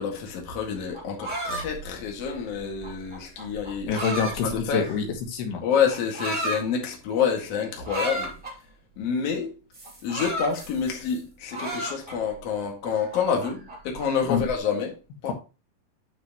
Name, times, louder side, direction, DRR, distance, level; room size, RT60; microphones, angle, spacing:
voice 1, 0.0-4.8 5.6-8.3 9.0-9.5 10.0-15.0 15.2-15.3, left 6 dB, 45° left, 2.5 m, -28 dB
sound 1, 0.8-5.2 5.9-6.6 7.8-8.5 9.7-11.2 11.5-12.4 12.8-14.5, right 1 dB, 30° right, 0.8 m, -33 dB
voice 2, 3.9-5.6 14.3-14.4 15.3-15.4, left 6 dB, 80° left, 3.2 m, -26 dB
9.9 x 6.1 x 3.0 m
omnidirectional pair, 4.7 m